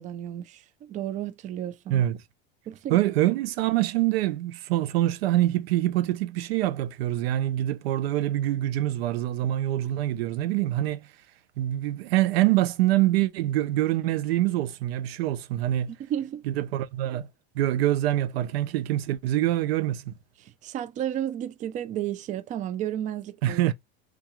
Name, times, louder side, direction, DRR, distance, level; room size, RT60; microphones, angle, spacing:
voice 1, 0.0-2.0 2.7-3.0 15.9-16.4 20.4-23.6, right 11 dB, 25° right, 0.4 m, -33 dB
voice 2, 2.9-11.1 11.6-15.9 16.5-17.3 17.5-20.2 23.4-23.7, right 14 dB, 80° right, 0.7 m, -25 dB
3.7 x 2.3 x 3.0 m
supercardioid pair, 125°, 30 cm